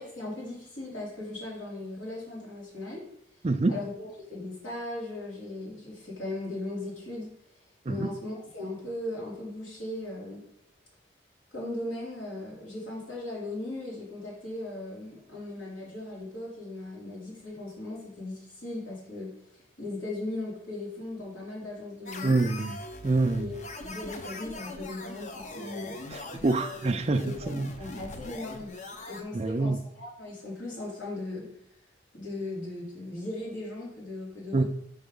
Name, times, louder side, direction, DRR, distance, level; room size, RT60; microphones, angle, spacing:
voice 1, 0.0-3.0 3.7-7.3 7.9-10.4 11.5-22.4 23.3-26.0 27.2-28.7 29.1-31.5 32.1-34.6, left 2 dB, 85° left, 3.0 m, -38 dB
sound 1, 22.1-29.2, left 2 dB, 40° left, 0.6 m, -41 dB
voice 2, 22.2-22.8 23.0-23.5 26.4-27.7 29.3-29.8 34.5-34.6, right 3 dB, 35° right, 0.4 m, -26 dB
5.6 x 4.4 x 5.3 m
head